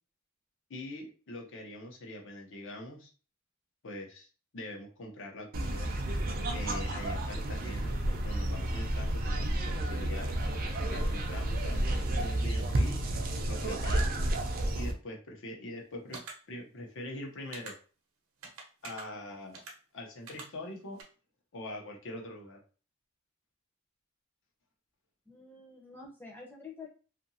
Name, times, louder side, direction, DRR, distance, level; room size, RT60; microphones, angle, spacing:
voice 1, 0.7-3.1 3.8-4.3 4.5-5.9 6.5-10.3 10.9-13.0 13.5-14.3 14.7-16.2 16.5-17.8 18.8-19.6 19.9-21.0 21.5-22.6, left 1 dB, 65° left, 1 dB, 0.8 m, -43 dB
sound 1, 5.5-14.9, right 1 dB, 45° right, 0.5 m, -31 dB
sound 2, 16.1-16.3 17.5-17.7 18.4-19.0 19.5-19.7 20.3-20.5 21.0-21.1, right 3 dB, 75° right, 0.8 m, -44 dB
voice 2, 25.3-26.9, left 4 dB, 10° left, -3 dB, 0.7 m, -48 dB
2.7 x 2.5 x 2.7 m, 0.37 s
head